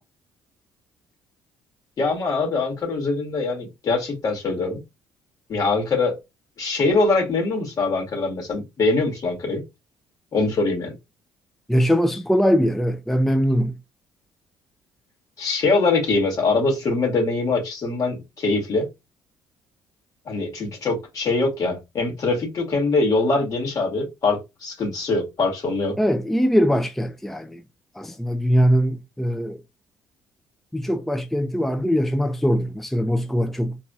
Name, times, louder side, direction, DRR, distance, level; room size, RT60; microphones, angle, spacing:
voice 1, 2.0-4.8 5.5-6.2 6.6-9.6 10.3-10.9 15.4-18.9 20.3-25.9, left 3 dB, 50° left, 2.4 m, -23 dB
voice 2, 11.7-13.8 26.0-27.6 27.9-29.6 30.7-33.8, equal, 5° left, 0.4 m, -21 dB
4.0 x 2.7 x 2.4 m
supercardioid pair, 65°, 8 cm